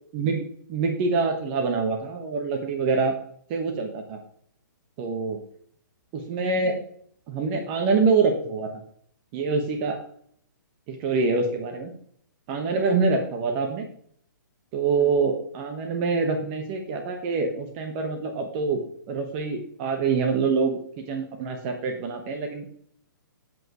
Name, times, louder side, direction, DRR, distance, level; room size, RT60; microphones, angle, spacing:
voice 1, 0.1-3.1 3.5-4.2 5.0-5.4 6.1-6.8 7.3-8.7 9.3-10.0 10.9-11.9 12.5-13.8 14.7-20.8 21.1-22.8, right 4 dB, 30° right, 4 dB, 1.3 m, -25 dB
7.8 x 7.7 x 3.1 m, 0.62 s
hypercardioid pair, 145°, 11 cm